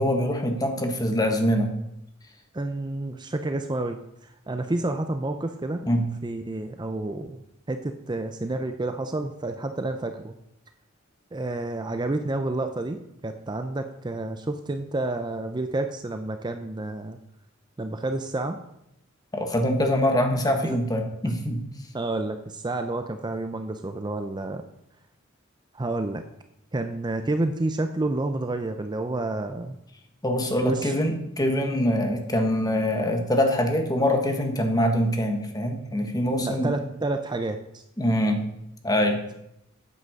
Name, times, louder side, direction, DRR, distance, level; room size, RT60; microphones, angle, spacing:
voice 1, 0.0-1.7 5.8-6.1 19.3-21.7 30.2-36.7 38.0-38.4 38.8-39.2, equal, 20° left, 4 dB, 1.5 m, -24 dB
voice 2, 2.5-5.8 6.2-10.3 11.3-17.2 17.8-18.6 20.6-20.8 21.9-24.6 25.7-26.2 26.7-29.8 30.6-30.9 36.4-37.8, right 2 dB, 20° right, 7 dB, 0.6 m, -29 dB
9.7 x 7.9 x 6.6 m, 0.81 s
head